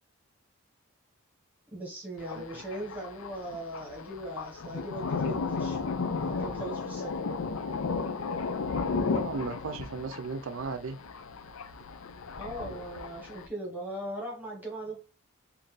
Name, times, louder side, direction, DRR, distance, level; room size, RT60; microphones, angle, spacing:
voice 1, 1.7-5.8 6.2-7.1 12.4-15.0, right 1 dB, 10° right, 1.3 m, -39 dB
Thunder, 2.2-13.5, left 4 dB, 75° left, 0.5 m, -34 dB
voice 2, 9.0-11.0, right 4 dB, 65° right, 0.5 m, -36 dB
4.4 x 2.7 x 3.2 m
head